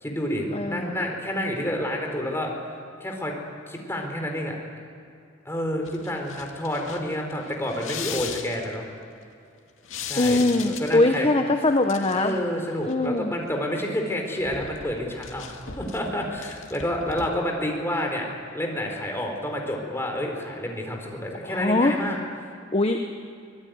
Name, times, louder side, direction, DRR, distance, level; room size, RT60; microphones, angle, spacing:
voice 1, 0.0-2.5 3.0-3.3 3.7-4.6 5.4-8.9 10.1-11.3 12.1-18.3 18.5-22.2, left 1 dB, 15° left, 1 dB, 4.3 m, -29 dB
voice 2, 0.5-1.0 10.2-12.4 12.9-13.3 21.4-22.0 22.7-23.0, left 2 dB, 30° left, 5 dB, 1.1 m, -22 dB
sound 1, 5.8-8.7 9.8-11.1 11.8-12.5 12.7-13.1 14.1-17.3, left 7 dB, 80° left, 2.2 m, -38 dB
24.5 x 19.0 x 9.5 m, 2.5 s
head